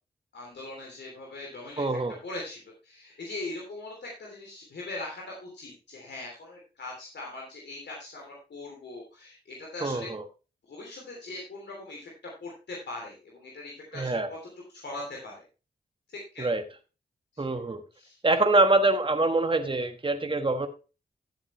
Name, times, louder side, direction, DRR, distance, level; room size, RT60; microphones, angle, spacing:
voice 1, 0.3-10.1 10.7-12.1 12.4-14.4 14.7-15.4 16.1-16.6 17.3-17.6 17.9-18.2, left 2 dB, 80° left, -1 dB, 3.1 m, -41 dB
voice 2, 1.8-2.2 9.8-10.2 13.9-14.3 16.4-16.6 17.4-17.8 18.2-20.7, right 2 dB, 30° right, 6 dB, 1.4 m, -25 dB
12.5 x 7.8 x 3.2 m, 0.31 s
cardioid pair, 55°, 18 cm